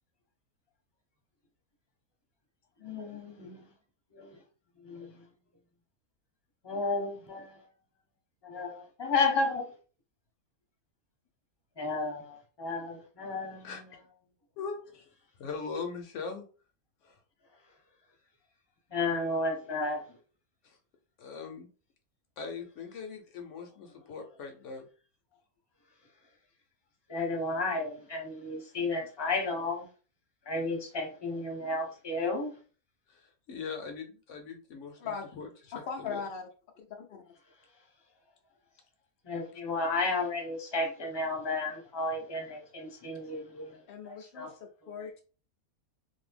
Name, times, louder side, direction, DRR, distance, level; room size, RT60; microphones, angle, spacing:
voice 1, 2.8-3.7 4.1-4.4 4.8-5.1 6.6-7.6 8.4-9.7 11.8-13.8 18.9-20.0 27.1-29.9 30.5-32.5 39.2-43.8 44.0-44.5 45.0-45.1, left 3 dB, 25° left, 0.6 m, -32 dB
voice 2, 14.6-15.1 15.4-16.4 17.0-17.2 20.6-20.8 21.2-21.7 22.4-24.9 33.1-35.5 36.0-36.2, left 5 dB, 65° left, 0.8 m, -40 dB
voice 3, 35.7-36.5 36.8-37.2 43.9-45.2, left 5 dB, 85° left, 0.5 m, -39 dB
2.6 x 2.6 x 3.3 m
omnidirectional pair, 1.5 m